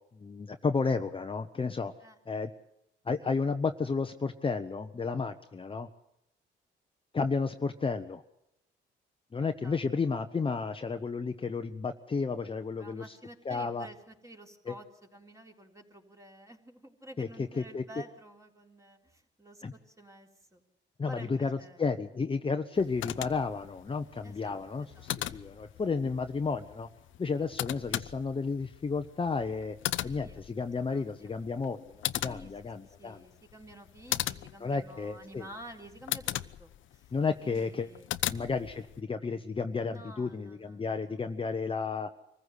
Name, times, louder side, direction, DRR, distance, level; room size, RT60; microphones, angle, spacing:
voice 1, 0.1-1.9 2.3-2.5 3.1-5.9 7.1-8.2 9.3-13.2 13.4-13.9 14.7-14.8 17.2-17.3 17.6-17.8 19.6-19.7 21.0-26.9 27.2-29.8 30.0-33.2 34.6-35.5 37.1-37.9 38.3-42.1, left 4 dB, 25° left, 7 dB, 0.9 m, -32 dB
voice 2, 12.8-14.9 15.1-20.6 21.0-21.8 24.2-25.1 26.0-26.2 30.0-30.4 30.9-31.3 32.2-32.5 32.8-37.0 37.4-38.2 39.8-41.2, right 1 dB, 15° right, 2 dB, 3.8 m, -51 dB
sound 1, 22.8-39.0, left 13 dB, 75° left, 0.8 m, -39 dB
24.5 x 15.0 x 8.2 m, 0.82 s
cardioid pair, 90°, 20 cm